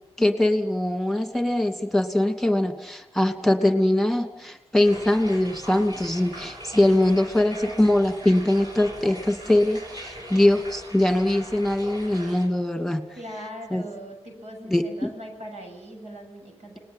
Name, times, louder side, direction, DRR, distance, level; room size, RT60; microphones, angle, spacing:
voice 1, 0.2-13.1 13.7-13.8 14.7-15.1, left 1 dB, ahead, 6 dB, 2.6 m, -22 dB
sound 1, 4.8-12.5, equal, 40° right, 7.7 m, -41 dB
voice 2, 13.1-16.8, equal, 85° right, 3 dB, 7.5 m, -40 dB
30.0 x 20.0 x 7.6 m, 0.95 s
cardioid pair, 55°, 11 cm